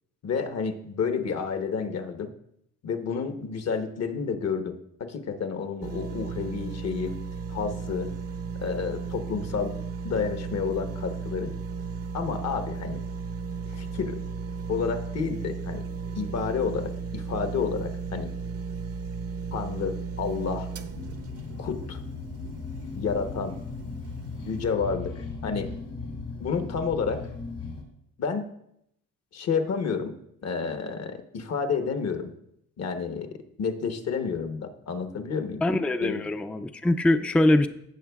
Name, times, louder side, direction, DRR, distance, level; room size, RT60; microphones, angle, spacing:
voice 1, 0.2-2.3 2.8-7.1 7.5-8.1 8.6-9.7 10.0-11.5 12.1-13.0 13.7-14.2 14.7-15.8 16.2-18.3 19.5-20.7 21.6-22.0 23.0-23.5 24.5-25.1 25.4-25.7 26.4-27.2 28.2-28.5 29.3-30.1 30.4-32.3 32.8-33.3 33.6-35.6 36.0-36.2, left 5 dB, 55° left, 8 dB, 1.0 m, -30 dB
sound 1, 5.8-23.0 23.5-23.6, right 5 dB, 50° right, 0.7 m, -35 dB
sound 2, 20.9-27.8, left 3 dB, 75° left, 3.1 m, -37 dB
voice 2, 35.6-37.7, left 1 dB, 5° left, 10 dB, 0.4 m, -23 dB
16.0 x 6.1 x 2.3 m, 0.76 s
cardioid pair, 90°, 30 cm